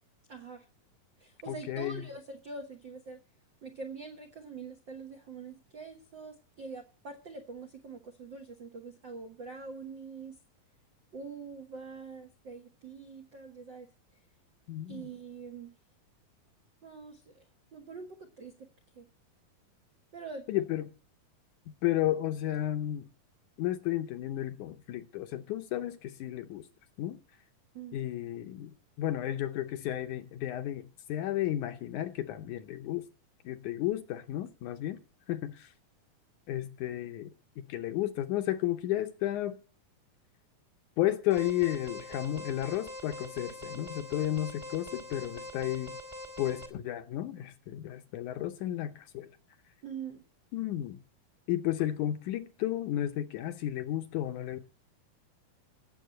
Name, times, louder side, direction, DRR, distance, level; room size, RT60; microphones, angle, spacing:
voice 1, 0.3-0.6 1.2-3.2 3.6-10.4 11.1-13.9 14.8-15.7 16.8-18.7 18.9-19.1 20.1-20.6 27.7-28.0 49.8-50.2, right 4 dB, 70° right, 1.0 m, -44 dB
voice 2, 1.5-2.0 14.7-15.0 20.5-20.9 21.7-23.1 23.6-26.7 27.0-27.2 27.9-33.1 33.5-35.0 35.3-35.7 36.5-39.6 41.0-46.0 46.4-49.3 50.5-51.0 51.5-54.6, left 13 dB, 75° left, 2.0 m, -33 dB
Alarm, 41.3-46.7, left 1 dB, 20° right, 0.8 m, -43 dB
16.5 x 7.5 x 7.6 m
omnidirectional pair, 4.0 m